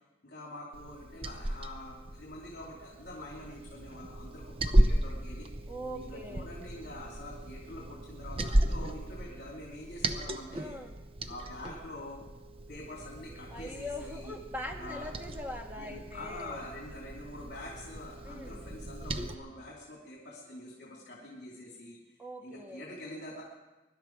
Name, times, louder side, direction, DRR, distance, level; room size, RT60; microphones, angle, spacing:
voice 1, 0.2-5.5 5.9-10.7 11.3-12.2 12.7-14.3 14.8-15.1 15.8-23.4, left 1 dB, 55° left, -3 dB, 3.1 m, -45 dB
Liquid, 0.7-19.3, right 1 dB, 30° right, 0.7 m, -34 dB
voice 2, 5.7-6.5 10.5-10.9 13.5-16.6 18.3-18.7 22.2-22.9, left 1 dB, 10° right, 2 dB, 1.6 m, -42 dB
23.5 x 12.0 x 4.7 m, 1.1 s
head